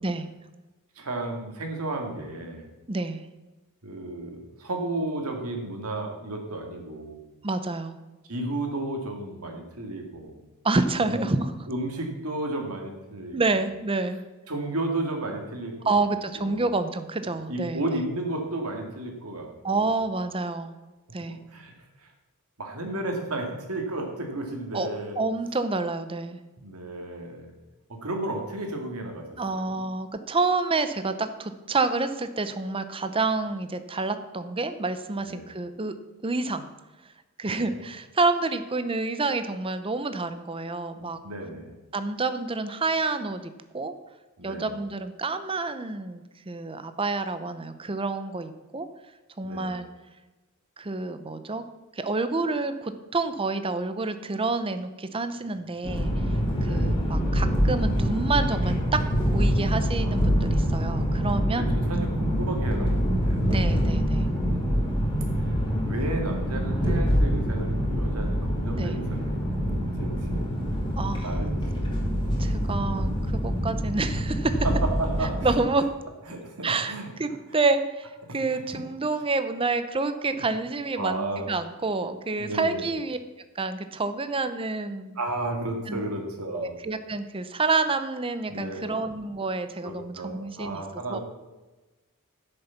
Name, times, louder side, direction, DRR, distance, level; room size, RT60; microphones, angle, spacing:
voice 1, 1.0-2.7 3.8-7.2 8.3-10.4 11.0-11.3 11.7-13.4 14.5-16.1 16.4-16.6 17.5-20.0 21.5-21.7 22.0-22.1 22.6-25.2 26.6-27.5 27.9-29.3 29.5-29.8 35.2-35.5 37.4-37.8 41.2-41.7 44.4-44.7 49.4-49.7 56.6-56.9 60.0-60.4 61.5-63.7 65.4-65.6 65.9-70.5 71.2-72.0 74.6-75.6 76.3-77.1 78.3-78.6 80.3-80.4 81.0-81.5 82.4-82.8 85.2-86.7 88.5-88.9 89.8-91.2, right 2 dB, 85° right, 2 dB, 2.3 m, -33 dB
voice 2, 2.9-3.2 7.4-8.0 10.6-11.6 13.3-14.2 15.8-18.0 19.6-20.7 21.1-21.4 24.7-24.9 25.2-26.4 29.4-35.9 36.2-36.7 37.4-41.2 41.9-43.9 44.4-48.9 49.4-49.9 50.8-51.6 51.9-56.1 56.6-61.7 63.5-64.3 68.8-69.0 71.0-71.4 72.4-74.7 75.4-75.8 76.6-76.9 77.2-83.2 83.5-85.2 85.9-86.0 86.5-90.8 91.1-91.2, right 3 dB, 25° right, 10 dB, 0.7 m, -28 dB
sound 1, 55.8-75.6, equal, 20° left, 2.6 m, -25 dB
10.5 x 6.6 x 7.1 m, 1.1 s
head